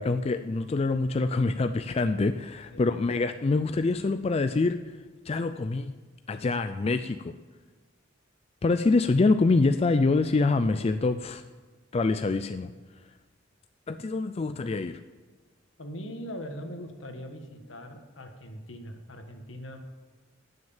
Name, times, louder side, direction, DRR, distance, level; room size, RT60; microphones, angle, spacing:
voice 1, 0.0-4.8 5.3-5.9 6.3-7.3 8.6-11.4 11.9-12.7 13.9-15.0, left 3 dB, 30° left, 10 dB, 0.4 m, -25 dB
voice 2, 15.8-19.8, equal, 75° left, 5 dB, 1.6 m, -41 dB
17.5 x 6.4 x 7.2 m, 1.3 s
head